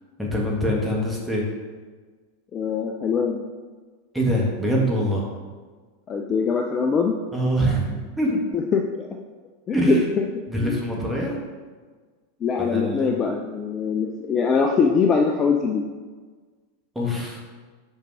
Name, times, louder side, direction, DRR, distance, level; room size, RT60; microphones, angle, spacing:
voice 1, 0.2-1.4 4.1-5.2 7.3-8.4 9.7-10.1 10.5-11.4 12.6-13.1 16.9-17.4, equal, 5° right, -3 dB, 1.8 m, -24 dB
voice 2, 2.5-3.4 6.1-7.2 8.5-9.1 9.7-10.3 10.6-10.8 12.4-15.8, left 5 dB, 30° left, 3 dB, 0.5 m, -22 dB
5.3 x 5.3 x 4.8 m, 1.4 s
figure-of-eight pair, 90°, 0 cm